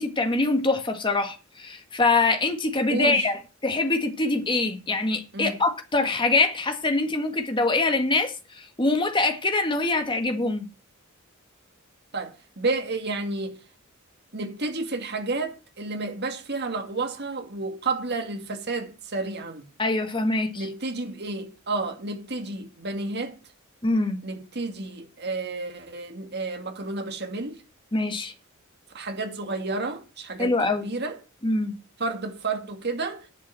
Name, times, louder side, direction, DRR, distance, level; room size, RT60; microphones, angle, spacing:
voice 1, 0.0-10.7 19.8-20.7 23.8-24.2 27.9-28.3 30.4-30.8 31.4-31.7, left 3 dB, 25° left, 1.8 m, -24 dB
voice 2, 2.9-3.3 5.3-5.6 12.1-13.6 14.3-19.7 20.6-23.4 24.2-27.6 28.9-31.1 32.0-33.3, right 3 dB, 55° right, 2.2 m, -31 dB
10.5 x 6.1 x 7.6 m
head